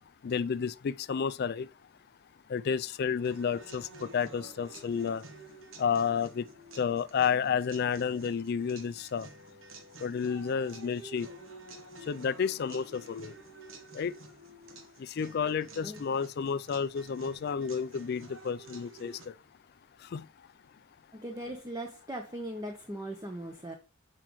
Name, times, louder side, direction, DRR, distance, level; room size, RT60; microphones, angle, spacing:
voice 1, 0.2-1.7 2.5-5.2 5.8-6.5 6.8-9.3 10.0-11.3 12.0-13.3 13.9-14.1 15.0-19.3 20.0-20.3, left 6 dB, 50° left, 0.4 m, -31 dB
sound 1, 3.2-19.3, right 2 dB, 75° right, 1.2 m, -51 dB
voice 2, 21.1-23.7, right 1 dB, 20° right, 0.8 m, -39 dB
7.4 x 5.0 x 3.1 m
head